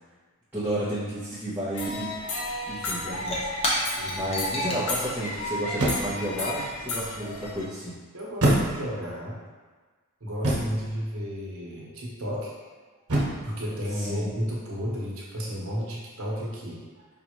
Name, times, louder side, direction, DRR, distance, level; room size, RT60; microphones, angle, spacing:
voice 1, 0.5-2.1 2.7-3.5 4.1-7.9 13.9-14.3, right 1 dB, 10° right, -13 dB, 0.8 m, -32 dB
sound 1, 1.7-7.7, left 1 dB, 75° left, 0.7 m, -33 dB
Shatter / Crushing, 2.6-7.5, left 1 dB, 25° left, 0.6 m, -34 dB
sound 2, 3.3-3.7 5.7-6.3 8.4-9.1 10.4-10.9 13.1-13.5, right 1 dB, 85° right, 1.1 m, -25 dB
voice 2, 4.0-4.8 8.1-9.4 10.2-12.5 13.4-17.1, equal, 65° right, -4 dB, 1.0 m, -33 dB
5.2 x 2.4 x 3.0 m, 1.4 s
head